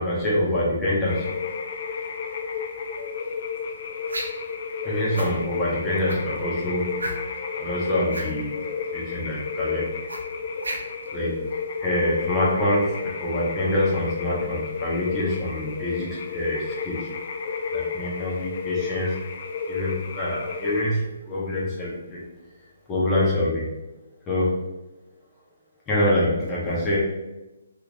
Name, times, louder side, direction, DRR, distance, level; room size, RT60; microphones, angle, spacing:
voice 1, 0.0-1.3 4.8-7.1 7.6-8.6 8.9-9.9 11.1-11.3 11.8-17.1 17.7-19.2 19.7-22.3 22.9-23.7 24.3-24.6 25.9-27.0, left 1 dB, 15° left, -6 dB, 1.2 m, -25 dB
sound 1, 1.1-20.8, left 5 dB, 50° left, 0.4 m, -32 dB
sound 2, 4.1-4.5 5.1-5.3 6.0-6.4 7.0-7.4 8.1-8.3 10.1-11.1, right 1 dB, 90° right, 0.7 m, -32 dB
3.5 x 3.2 x 2.4 m, 1.0 s
hypercardioid pair, 145°, 0 cm